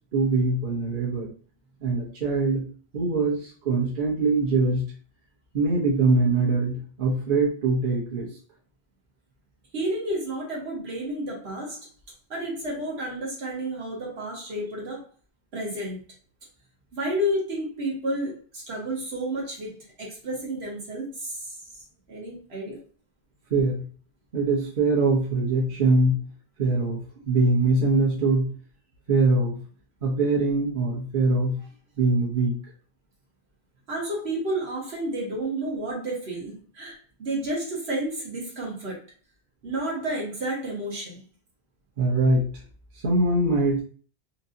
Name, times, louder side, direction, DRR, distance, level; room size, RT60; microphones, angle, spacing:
voice 1, 0.1-1.3 1.8-2.7 2.9-4.8 5.5-8.3 23.5-23.8 24.3-26.2 26.6-28.5 29.1-29.6 30.0-31.6 32.0-32.6 42.0-42.5 43.0-43.8, right 3 dB, 55° right, -4 dB, 1.0 m, -23 dB
voice 2, 9.7-11.9 12.3-15.0 15.5-16.0 16.9-21.5 22.1-22.8 33.9-39.0 39.6-41.2, right 1 dB, 80° right, -3 dB, 1.4 m, -31 dB
3.0 x 2.7 x 2.6 m, 0.41 s
omnidirectional pair, 1.1 m